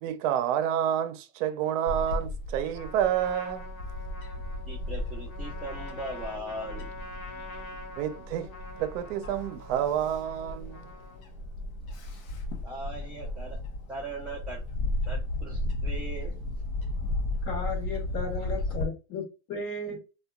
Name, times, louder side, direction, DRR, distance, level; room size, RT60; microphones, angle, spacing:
voice 1, 0.0-3.7 8.0-8.5 8.8-10.9, right 10 dB, 65° right, 0.6 m, -29 dB
Bird / Wind, 1.9-18.8, left 1 dB, 80° left, 0.8 m, -35 dB
Trumpet, 2.7-11.4, left 2 dB, 65° left, 1.1 m, -45 dB
voice 2, 4.7-7.0 12.0-12.2 12.6-13.6 13.9-14.6 15.1-16.3, right 1 dB, ahead, 0.4 m, -39 dB
voice 3, 17.4-19.2 19.5-20.0, left 3 dB, 35° left, 0.9 m, -34 dB
2.7 x 2.2 x 2.2 m
supercardioid pair, 125°, 41 cm